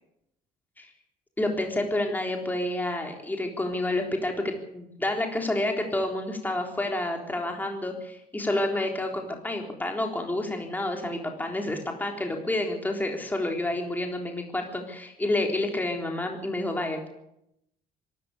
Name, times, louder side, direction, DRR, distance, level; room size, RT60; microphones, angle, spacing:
voice 1, 1.4-17.1, left 1 dB, 10° left, 2 dB, 3.8 m, -29 dB
25.0 x 13.0 x 8.3 m, 0.82 s
cardioid pair, 110°, 17 cm